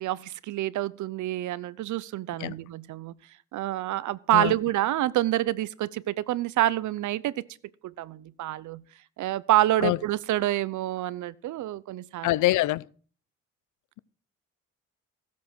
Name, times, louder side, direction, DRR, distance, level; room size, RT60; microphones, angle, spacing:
voice 1, 0.0-3.1 3.5-7.5 7.8-8.8 9.2-12.3, right 14 dB, 75° right, 0.7 m, -27 dB
voice 2, 12.2-12.8, left 17 dB, 85° left, 0.6 m, -24 dB
16.0 x 7.5 x 6.1 m
cardioid pair, 90°, 30 cm